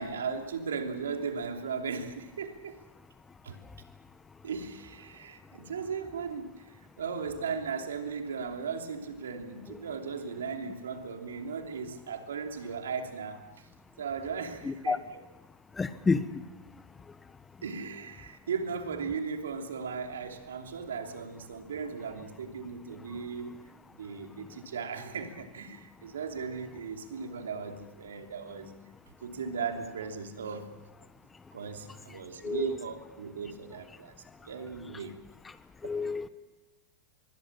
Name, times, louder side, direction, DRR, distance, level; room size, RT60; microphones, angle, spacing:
voice 1, 0.0-2.8 3.4-3.6 4.4-13.7 14.0-15.2 17.6-23.6 23.9-28.7 29.2-30.7 31.5-35.2 36.0-36.1, right 5 dB, 85° right, 4 dB, 2.9 m, -37 dB
voice 2, 14.6-15.0 15.8-16.4 32.4-32.7 35.8-36.3, left 4 dB, 15° left, 13 dB, 1.2 m, -29 dB
24.5 x 21.0 x 7.4 m, 1.1 s
hypercardioid pair, 100°, 0 cm